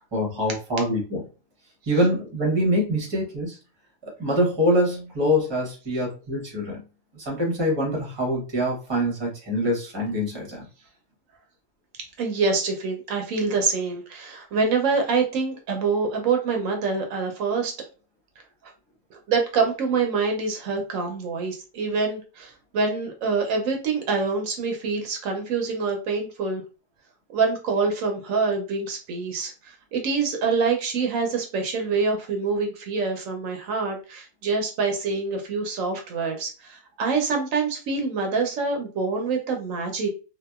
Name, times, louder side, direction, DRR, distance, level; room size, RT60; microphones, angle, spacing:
voice 1, 0.1-1.2 1.9-3.6 4.0-6.8 7.1-10.6, equal, 20° right, -1 dB, 0.8 m, -24 dB
voice 2, 12.2-17.7 19.3-26.6 27.3-29.5 29.9-40.1, right 4 dB, 75° right, 3 dB, 1.0 m, -25 dB
2.7 x 2.3 x 2.3 m, 0.33 s
omnidirectional pair, 1.4 m